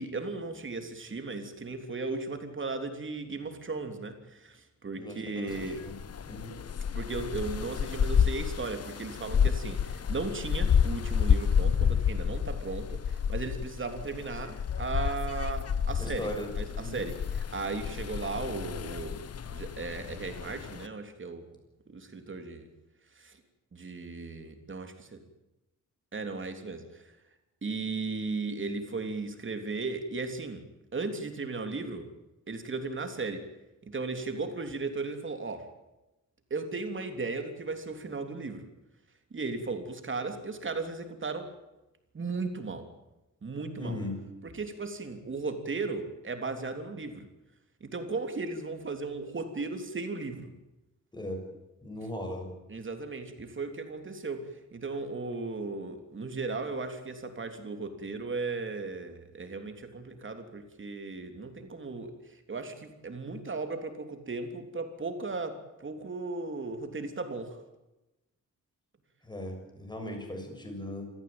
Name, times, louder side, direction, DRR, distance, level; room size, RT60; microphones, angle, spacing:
voice 1, 0.0-5.8 6.9-16.3 16.6-19.2 19.5-21.4 21.9-22.7 23.1-23.4 23.7-25.2 26.1-27.0 27.6-30.6 30.9-32.1 32.5-33.4 33.8-35.7 36.5-38.6 39.3-41.5 42.1-42.9 43.4-44.0 44.4-47.3 47.8-50.5 52.7-54.4 54.7-62.1 62.5-67.6, right 3 dB, 40° right, 6 dB, 3.3 m, -36 dB
voice 2, 4.9-6.0 6.3-6.6 16.0-16.5 16.8-17.1 43.8-44.2 51.1-51.4 51.8-52.5 69.2-71.1, left 1 dB, 15° left, 2 dB, 6.8 m, -38 dB
sound 1, 5.5-20.9, left 7 dB, 50° left, 0.9 m, -30 dB
27.5 x 15.0 x 8.8 m, 1.0 s
wide cardioid pair, 135°, 31 cm